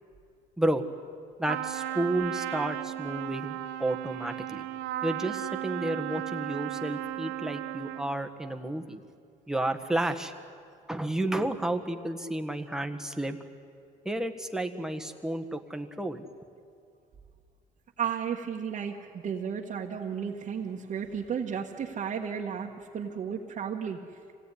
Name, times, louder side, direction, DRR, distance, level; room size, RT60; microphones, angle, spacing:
voice 1, 1.4-4.6 5.0-9.0 9.5-10.3 10.9-13.4 14.0-16.2, right 1 dB, 5° right, 4 dB, 1.6 m, -31 dB
Trumpet, 1.5-8.2, right 13 dB, 85° right, 1.1 m, -35 dB
voice 2, 18.0-24.0, right 7 dB, 45° right, -2 dB, 1.6 m, -33 dB
26.0 x 17.5 x 10.0 m, 2.4 s
cardioid pair, 110°, 17 cm